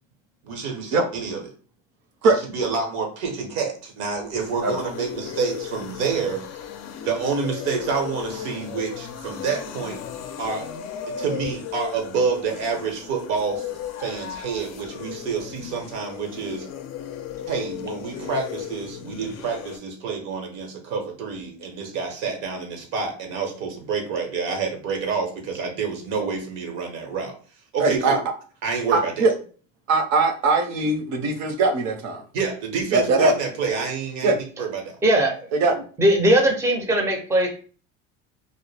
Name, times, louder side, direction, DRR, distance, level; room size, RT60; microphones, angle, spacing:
voice 1, 0.4-1.4 2.2-6.4 7.0-10.0 10.4-10.7 11.2-16.7 17.5-27.3 27.7-28.2 28.6-29.3 32.3-34.3 34.6-35.0, right 5 dB, 80° right, 2 dB, 0.9 m, -28 dB
sound 1, 4.1-19.8, left 9 dB, 50° left, 0.4 m, -36 dB
voice 2, 27.8-28.2 28.9-29.3 29.9-32.2 32.9-33.3 34.2-34.4 35.5-35.8, right 3 dB, 55° right, 6 dB, 0.7 m, -20 dB
voice 3, 35.0-35.3 36.0-37.5, right 1 dB, 10° right, 3 dB, 0.5 m, -19 dB
2.2 x 2.0 x 3.1 m, 0.40 s
supercardioid pair, 105°, 34 cm